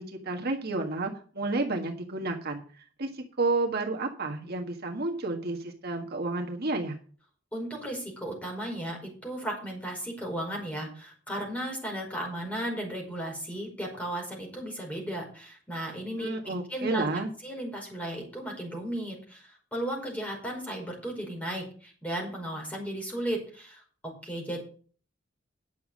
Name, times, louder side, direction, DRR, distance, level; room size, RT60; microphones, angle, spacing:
voice 1, 0.0-7.0 16.2-17.3, right 2 dB, 55° right, 2 dB, 1.6 m, -31 dB
voice 2, 7.5-17.1 17.4-23.8 24.2-24.6, right 1 dB, 5° left, 0 dB, 5.1 m, -35 dB
10.5 x 7.1 x 6.3 m, 0.41 s
head